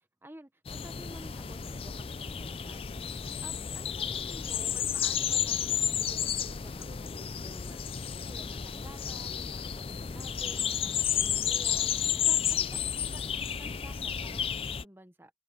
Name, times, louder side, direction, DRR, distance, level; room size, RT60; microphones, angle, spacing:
voice 1, 0.2-13.3 13.6-15.3, right 1 dB, 10° right, 1.1 m, -52 dB
sound 1, 0.7-14.8, left 8 dB, 30° left, 0.4 m, -32 dB
open air
head